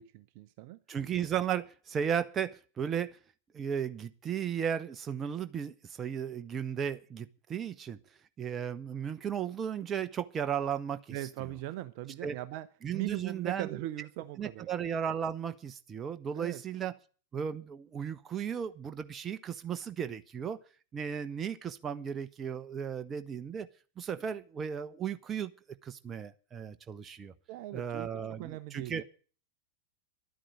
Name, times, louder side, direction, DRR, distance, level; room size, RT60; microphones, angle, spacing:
voice 1, 0.0-0.8 11.1-12.7 12.9-14.7 16.3-16.6 27.5-29.0, right 14 dB, 45° right, 0.7 m, -40 dB
voice 2, 0.9-3.2 3.5-8.0 8.4-11.2 12.2-12.3 12.8-13.7 14.4-16.9 17.3-20.6 20.9-23.7 24.0-25.5 25.8-27.3 27.7-29.0, right 8 dB, 25° right, 1.1 m, -35 dB
12.0 x 9.2 x 8.9 m
figure-of-eight pair, 90°, 0 cm